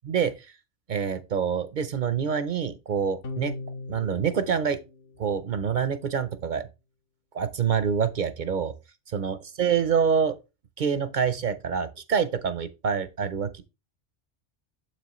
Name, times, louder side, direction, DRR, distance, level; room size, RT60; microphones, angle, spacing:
voice 1, 0.0-0.5 0.9-3.5 3.9-4.8 5.2-6.7 7.3-8.7 9.1-10.4 10.8-13.6, right 7 dB, 55° right, 0.6 m, -26 dB
sound 1, 3.2-5.8, left 3 dB, 60° left, 1.2 m, -39 dB
7.6 x 6.0 x 3.0 m
omnidirectional pair, 1.2 m